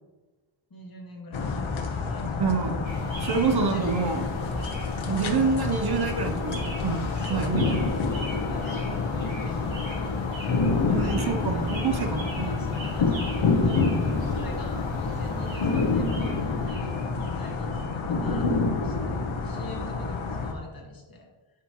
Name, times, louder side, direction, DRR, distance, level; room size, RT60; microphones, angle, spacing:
voice 1, 0.7-1.7 2.0-4.3 4.6-5.6 7.2-7.6 8.0-21.3, left 1 dB, 45° left, 0 dB, 1.6 m, -43 dB
sound 1, 1.3-20.5, left 4 dB, 75° left, 1.0 m, -28 dB
voice 2, 2.4-2.8 3.2-4.3 5.1-7.8 10.9-12.6, right 5 dB, 50° right, 5 dB, 0.8 m, -27 dB
sound 2, 2.8-9.7, equal, 15° right, 1.1 m, -45 dB
sound 3, 2.8-18.0, right 1 dB, 65° right, 2.3 m, -41 dB
9.5 x 6.1 x 3.0 m, 1.2 s
wide cardioid pair, 165°, 49 cm